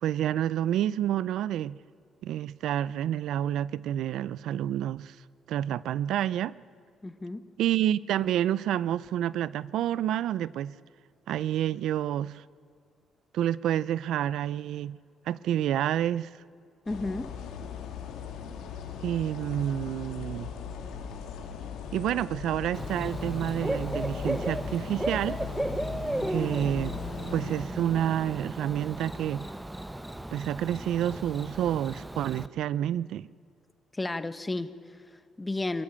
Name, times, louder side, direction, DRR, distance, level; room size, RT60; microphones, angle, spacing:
voice 1, 0.0-1.8 2.2-5.2 5.5-6.5 7.6-10.8 11.3-12.4 13.3-15.0 15.3-16.3 19.0-20.5 21.9-25.4 26.3-26.9 27.3-29.5 30.3-33.3, right 11 dB, 80° right, 0.4 m, -29 dB
voice 2, 7.0-7.5 16.9-17.4 33.9-35.8, left 2 dB, 20° left, 1.1 m, -33 dB
sound 1, 16.9-27.6, left 7 dB, 85° left, 2.0 m, -39 dB
Bird / Cricket, 22.7-32.5, right 1 dB, 10° right, 0.9 m, -35 dB
23.5 x 14.0 x 8.7 m
cardioid pair, 90°, 0 cm